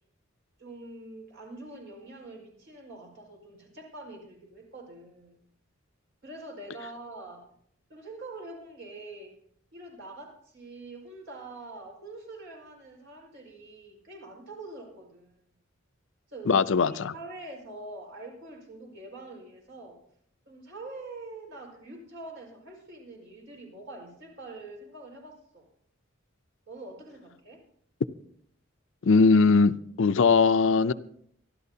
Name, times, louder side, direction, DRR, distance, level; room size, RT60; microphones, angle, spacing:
voice 1, 0.6-5.4 6.2-7.5 7.9-9.4 9.7-15.4 16.3-16.5 16.9-20.0 20.5-25.7 26.7-27.6, right 2 dB, 65° right, 5.1 m, -44 dB
voice 2, 16.5-17.1 29.0-30.9, left 4 dB, 65° left, 0.5 m, -20 dB
25.0 x 12.0 x 2.8 m
head